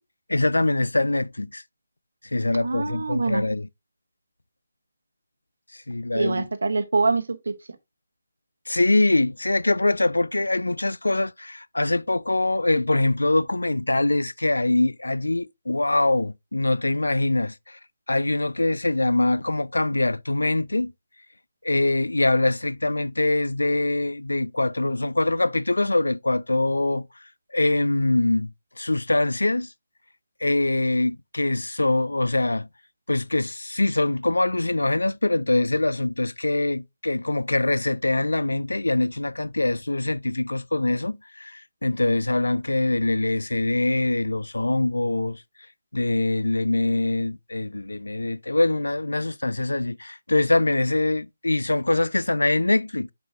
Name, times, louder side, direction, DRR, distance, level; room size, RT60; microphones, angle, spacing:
voice 1, 0.3-1.6 2.3-3.7 5.7-6.5 8.7-17.8 18.1-20.9 21.6-27.1 27.5-28.5 28.8-29.7 30.4-32.7 33.1-45.4 45.9-53.1, left 2 dB, 70° left, 0.3 m, -23 dB
voice 2, 2.6-3.4 6.1-7.6, right 3 dB, 60° right, 0.9 m, -24 dB
7.7 x 4.8 x 2.6 m
figure-of-eight pair, 145°, 0 cm